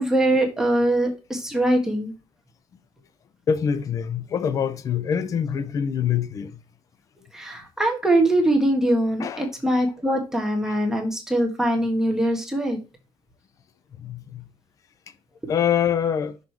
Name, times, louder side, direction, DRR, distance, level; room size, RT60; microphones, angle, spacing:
voice 1, 0.0-2.1 7.3-12.8, right 1 dB, 5° right, 1.4 m, -22 dB
voice 2, 3.5-6.6 9.2-9.5 10.7-10.8 14.0-14.5 15.5-16.4, left 8 dB, 35° left, 0.6 m, -25 dB
6.3 x 5.1 x 4.6 m
cardioid pair, 165°, 10 cm